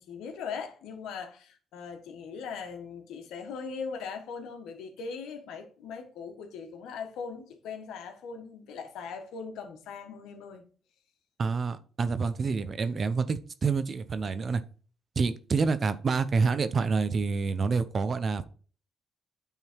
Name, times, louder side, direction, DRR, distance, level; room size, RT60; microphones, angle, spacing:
voice 1, 0.0-10.6, left 5 dB, 85° left, 1.5 m, -40 dB
voice 2, 11.4-14.6 15.2-18.5, right 4 dB, 45° right, 0.8 m, -27 dB
9.0 x 3.9 x 4.6 m
cardioid pair, 90°, 0 cm